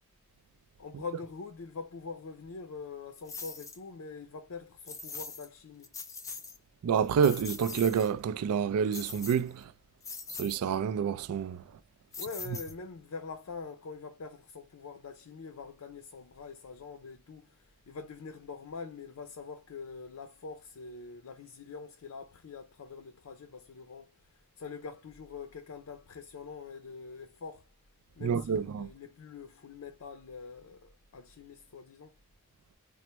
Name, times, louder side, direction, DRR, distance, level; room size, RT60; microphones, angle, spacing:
voice 1, 0.8-5.9 12.2-17.5 17.9-24.1 24.6-27.6 28.2-32.1, left 4 dB, 75° left, 0.5 m, -44 dB
sound 1, 3.3-3.8 4.9-5.5 5.8-6.6 7.0-8.1 8.9-9.6 10.0-10.6 12.1-13.0, left 4 dB, 15° left, 0.4 m, -42 dB
voice 2, 6.8-9.6 10.4-11.6 28.2-28.9, right 7 dB, 85° right, 0.3 m, -28 dB
4.3 x 2.0 x 2.9 m
head